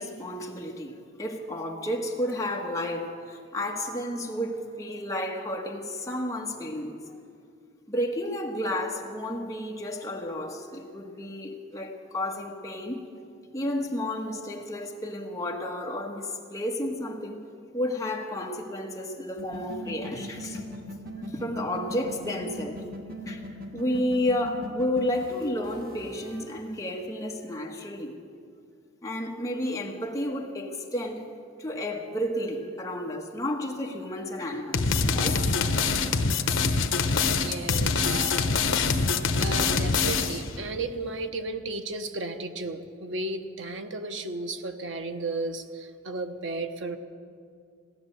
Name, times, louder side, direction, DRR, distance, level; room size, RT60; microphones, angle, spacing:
voice 1, 0.0-7.0 7.9-13.0 13.5-17.4 17.7-20.6 21.3-22.8 23.3-23.4 23.7-28.2 29.0-31.3 31.6-35.5 36.4-36.5, left 1 dB, 15° left, 0 dB, 1.4 m, -31 dB
sound 1, 19.4-26.4, equal, 50° right, 1.4 m, -39 dB
sound 2, 34.7-40.5, left 4 dB, 75° left, 1.0 m, -24 dB
voice 2, 37.3-38.5 39.4-47.0, right 3 dB, 70° right, 6 dB, 1.0 m, -34 dB
17.0 x 10.5 x 7.9 m, 2.3 s
head